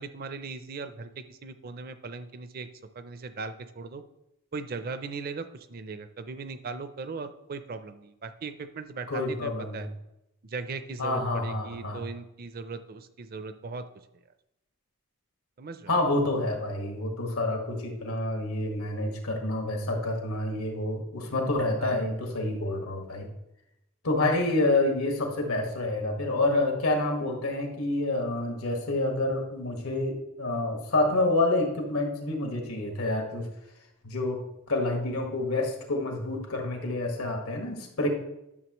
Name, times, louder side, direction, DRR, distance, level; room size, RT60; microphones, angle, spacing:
voice 1, 0.0-2.7 3.0-4.0 4.5-9.9 10.4-13.8 15.6-15.9 21.8-22.1, right 4 dB, 45° right, 11 dB, 0.5 m, -38 dB
voice 2, 9.1-9.9 11.0-12.0 15.9-23.3 24.0-33.5 34.0-34.4 34.7-38.1, left 2 dB, 90° left, 2 dB, 1.6 m, -28 dB
11.0 x 6.6 x 3.0 m, 0.88 s
head